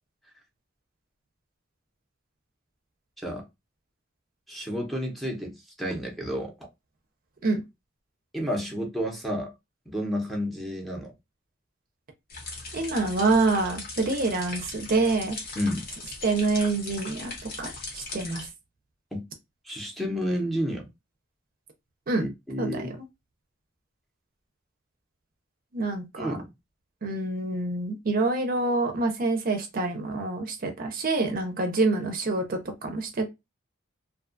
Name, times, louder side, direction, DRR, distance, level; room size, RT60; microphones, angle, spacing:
voice 1, 4.5-6.5 8.3-9.5 9.9-11.1 15.6-15.8 19.1-19.2 19.7-20.9 22.2-22.9 26.2-26.5, equal, ahead, 0.6 m, -31 dB
sound 1, 12.3-18.5, left 3 dB, 50° left, 0.9 m, -39 dB
voice 2, 12.7-15.4 16.2-17.3 17.6-18.5 22.1-22.3 22.6-22.9 25.7-26.4 27.0-33.3, right 3 dB, 45° right, 0.5 m, -26 dB
2.5 x 2.3 x 2.4 m
head